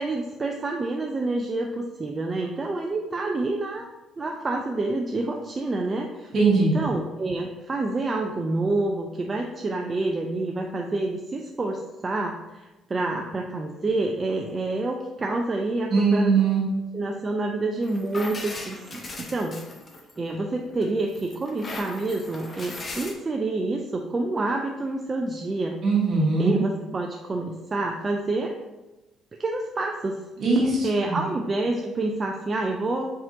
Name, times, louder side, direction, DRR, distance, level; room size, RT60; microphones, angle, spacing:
voice 1, 0.0-3.9 4.2-6.3 6.6-16.4 16.9-19.6 20.2-25.8 26.4-28.6 29.4-30.2 30.8-33.1, right 2 dB, 25° right, 1 dB, 0.3 m, -28 dB
voice 2, 6.3-6.8 15.9-16.6 25.8-26.6 30.4-31.2, right 4 dB, 45° right, -3 dB, 1.3 m, -21 dB
sound 1, 17.8-20.4 20.8-23.1, left 2 dB, 25° left, 0.6 m, -38 dB
4.7 x 3.7 x 2.6 m, 1.1 s
cardioid pair, 140°, 0 cm